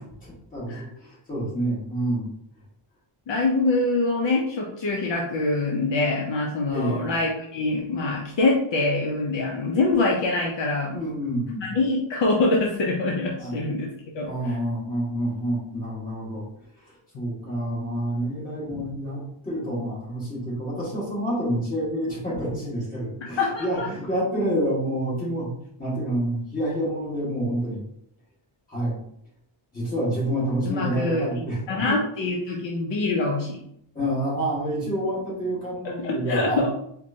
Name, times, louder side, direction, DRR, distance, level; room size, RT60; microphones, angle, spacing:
voice 1, 0.0-2.3 6.7-7.1 10.9-11.7 13.4-13.5 14.2-16.4 16.8-25.5 25.8-27.8 28.7-29.0 29.7-31.9 33.9-36.6, right 1 dB, 15° left, -8 dB, 1.5 m, -28 dB
voice 2, 3.3-11.0 11.5-13.9 14.1-14.6 23.4-23.9 30.6-31.3 31.7-33.6 36.0-36.7, left 2 dB, 60° left, -1 dB, 0.6 m, -24 dB
4.1 x 2.2 x 2.6 m, 0.72 s
wide cardioid pair, 175°, 50 cm